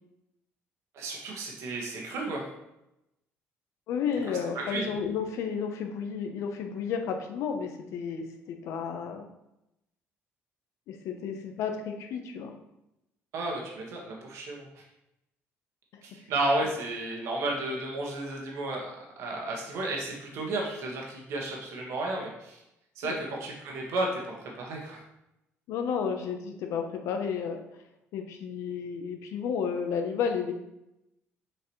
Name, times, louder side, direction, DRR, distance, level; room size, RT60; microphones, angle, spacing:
voice 1, 0.9-2.4 4.5-4.9 13.3-14.6 16.0-22.6 23.0-25.0, right 2 dB, 70° right, -1 dB, 1.6 m, -33 dB
voice 2, 3.9-9.3 10.9-12.5 15.9-16.0 23.0-23.2 25.7-27.6 28.1-30.5, left 6 dB, 75° left, 5 dB, 0.9 m, -32 dB
6.6 x 4.7 x 3.2 m, 0.87 s
cardioid pair, 140°, 5 cm